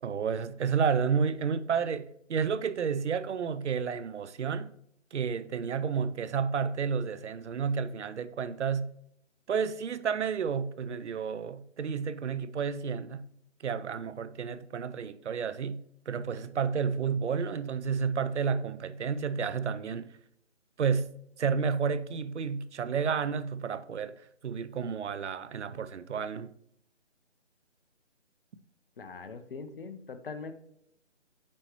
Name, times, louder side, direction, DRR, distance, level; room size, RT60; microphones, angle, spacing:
voice 1, 0.0-4.7 5.1-8.9 9.5-13.3 13.6-20.1 20.8-21.1 21.4-24.2 24.4-26.5, right 6 dB, 75° right, 0.6 m, -31 dB
voice 2, 29.0-30.5, left 4 dB, 50° left, 0.7 m, -41 dB
8.5 x 4.6 x 3.0 m
figure-of-eight pair, 155°, 36 cm